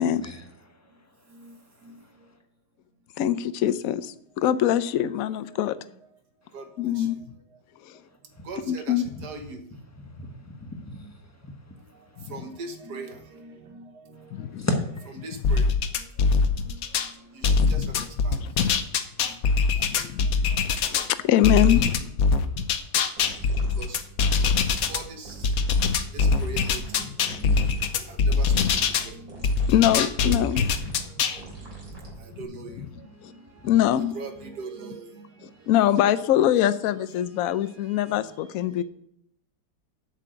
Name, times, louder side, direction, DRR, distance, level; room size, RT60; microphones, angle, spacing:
voice 1, 0.0-2.4 6.4-6.6 8.0-8.5 9.1-9.2 9.9-12.3 14.1-15.2 16.4-17.5 18.4-19.9 20.3-20.9 22.4-23.8 26.0-26.1 27.7-28.1 29.6-29.7 30.9-32.4 33.2-33.8 35.5-35.7, left 1 dB, 10° left, 0.8 m, -40 dB
voice 2, 3.2-5.8 6.8-7.2 7.9-8.0 8.7-9.0 14.3-14.7 17.6-17.9 19.8-20.4 20.9-22.1 27.3-27.4 29.7-30.9 33.2-33.3 33.6-34.1 35.7-38.8, left 11 dB, 75° left, 0.8 m, -23 dB
voice 3, 8.5-9.6 12.3-13.8 15.2-15.6 16.7-16.8 17.4-18.4 23.8-24.0 24.9-25.4 26.1-27.1 27.4-27.6 28.1-29.3 31.3-31.4 32.4-32.7 34.1-35.2 36.3-36.5, right 4 dB, 60° right, 1.7 m, -40 dB
sound 1, 15.4-17.1 17.4-21.1 21.4-25.0 25.4-29.1 29.4-31.4, left 4 dB, 60° left, 1.1 m, -23 dB
sound 2, 23.2-32.4, right 3 dB, 75° right, 4.1 m, -42 dB
8.4 x 6.8 x 7.8 m
omnidirectional pair, 2.1 m